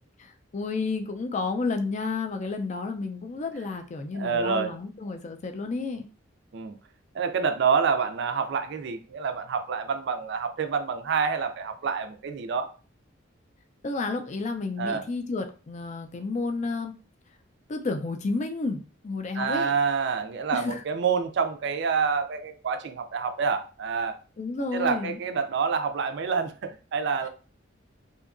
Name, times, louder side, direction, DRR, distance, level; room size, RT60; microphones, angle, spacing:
voice 1, 0.2-6.1 13.8-16.9 17.7-19.7 20.5-20.8 24.4-25.2, left 3 dB, 35° left, 5 dB, 0.4 m, -31 dB
voice 2, 4.1-4.8 6.5-6.8 7.1-12.7 14.8-15.1 19.3-24.2 24.7-27.3, right 5 dB, 60° right, 8 dB, 0.4 m, -27 dB
2.7 x 2.3 x 2.4 m, 0.35 s
head